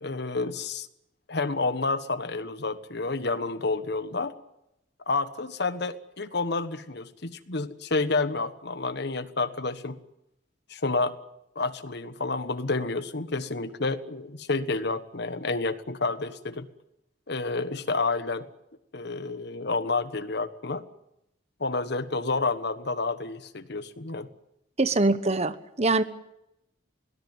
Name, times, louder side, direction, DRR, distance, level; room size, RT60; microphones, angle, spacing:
voice 1, 0.0-0.9 1.3-4.4 5.1-10.0 10.7-11.2 11.5-16.7 17.3-18.5 18.9-20.8 21.6-24.3, left 3 dB, 60° left, 12 dB, 1.3 m, -29 dB
voice 2, 24.8-26.0, right 2 dB, 35° right, 13 dB, 1.1 m, -23 dB
22.0 x 19.0 x 9.3 m, 0.84 s
head